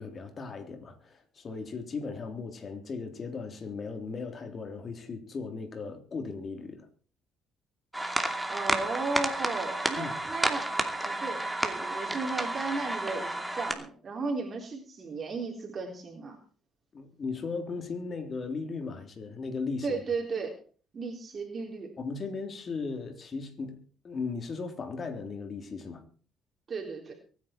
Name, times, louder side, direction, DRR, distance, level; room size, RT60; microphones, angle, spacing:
voice 1, 0.0-6.9 10.0-10.1 16.9-20.0 22.0-23.8 24.0-26.0, left 4 dB, 40° left, 3.4 m, -37 dB
sound 1, 7.9-13.7, right 1 dB, 5° right, 2.6 m, -31 dB
voice 2, 8.5-10.7 11.0-16.4 19.8-20.5 20.9-21.9 26.7-27.1, right 4 dB, 40° right, 3.8 m, -35 dB
23.5 x 10.0 x 4.5 m
cardioid pair, 90°, 0 cm